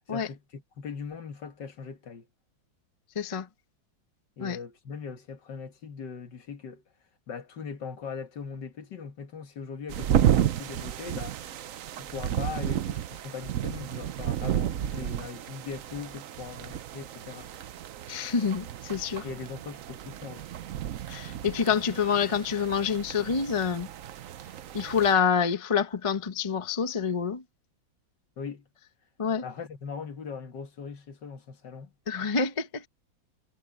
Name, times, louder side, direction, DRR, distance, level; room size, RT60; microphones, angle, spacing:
voice 1, 0.1-2.3 4.4-6.8 7.3-11.7 12.0-17.5 19.2-20.5 28.4-28.7 29.4-31.9, left 5 dB, 65° left, 2.1 m, -40 dB
voice 2, 3.1-3.5 4.4-4.6 18.1-19.3 21.1-23.9 24.7-27.4 29.2-29.4 32.1-32.9, left 6 dB, 25° left, 0.8 m, -27 dB
sound 1, 9.9-25.1, right 10 dB, 60° right, 0.8 m, -32 dB
omnidirectional pair, 2.1 m